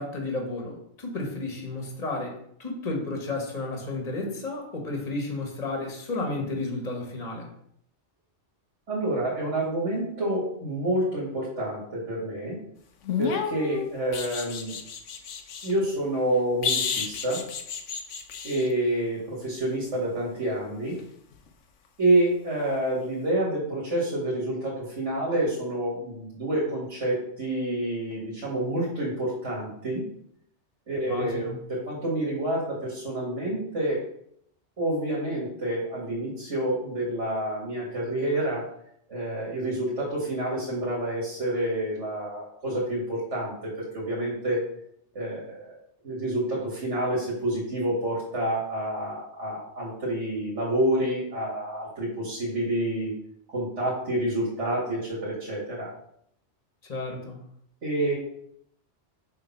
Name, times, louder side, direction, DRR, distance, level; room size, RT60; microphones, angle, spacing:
voice 1, 0.0-7.5 31.1-31.6 56.9-57.4, left 2 dB, 35° left, 1 dB, 1.4 m, -32 dB
voice 2, 8.9-12.6 13.2-14.8 15.6-17.4 18.4-21.0 22.0-30.0 30.9-34.0 34.8-38.7 39.1-43.5 43.9-44.6 45.2-45.7 46.0-53.1 53.5-55.9 57.8-58.2, right 1 dB, 80° right, -6 dB, 2.3 m, -28 dB
sound 1, 13.0-15.7 16.6-18.7 21.3-21.5, left 6 dB, 90° left, 1.1 m, -31 dB
6.6 x 3.5 x 5.7 m, 0.70 s
omnidirectional pair, 1.2 m